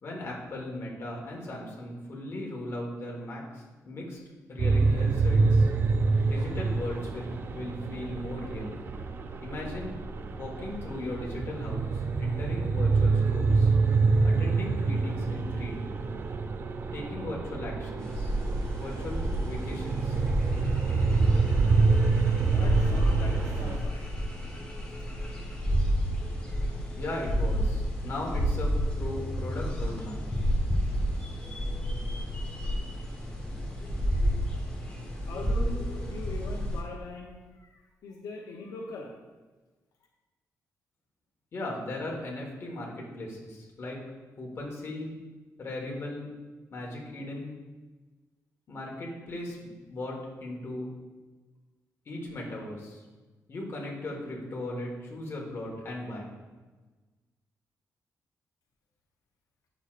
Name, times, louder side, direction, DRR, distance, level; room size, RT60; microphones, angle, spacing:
voice 1, 0.0-4.2 4.5-5.7 6.3-8.7 9.4-10.0 10.3-13.7 14.2-15.9 16.9-18.3 18.8-20.2 27.0-30.2 41.5-44.0 44.4-45.1 45.6-46.3 46.7-47.6 48.7-50.9 52.0-53.0 53.5-56.3, left 1 dB, 45° left, -2 dB, 1.4 m, -37 dB
sound 1, 4.6-23.8, right 4 dB, 35° right, 0.4 m, -27 dB
sound 2, 18.0-36.8, equal, 15° left, 1.2 m, -30 dB
voice 2, 21.9-24.1 35.2-39.1, left 3 dB, 85° left, -1 dB, 0.8 m, -41 dB
8.1 x 6.0 x 2.5 m, 1.3 s
wide cardioid pair, 155°, 6 cm